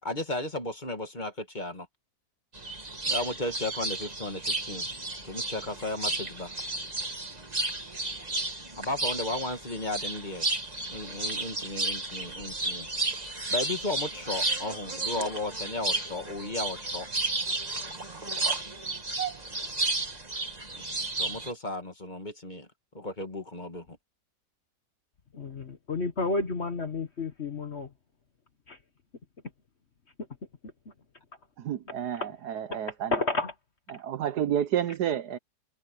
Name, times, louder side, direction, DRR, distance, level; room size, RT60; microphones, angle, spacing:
voice 1, 0.0-1.9 3.0-4.9 5.2-6.5 8.8-10.5 10.9-12.9 13.5-17.1 20.7-22.7 22.9-24.0, left 2 dB, 25° left, 2.0 m, -35 dB
sound 1, 2.5-21.5, right 2 dB, 20° right, 2.4 m, -33 dB
voice 2, 25.3-27.9 28.7-28.8 32.2-32.3 32.7-32.8 33.1-33.5, left 3 dB, 40° left, 1.4 m, -31 dB
voice 3, 31.6-33.2 33.9-35.4, right 10 dB, 70° right, 1.3 m, -30 dB
omnidirectional pair, 1.9 m